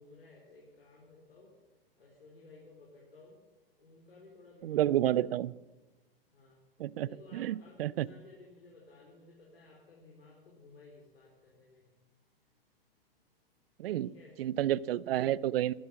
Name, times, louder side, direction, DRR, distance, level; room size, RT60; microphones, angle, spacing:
voice 1, 0.0-1.5 2.0-3.4 3.8-5.2 6.3-6.6 7.0-11.8 14.0-14.4, left 3 dB, 85° left, -2 dB, 4.3 m, -56 dB
voice 2, 4.6-5.5 6.8-8.1 13.8-14.1 14.4-15.7, right 12 dB, 70° right, 22 dB, 0.6 m, -30 dB
13.0 x 13.0 x 8.0 m, 1.1 s
hypercardioid pair, 110°, 30 cm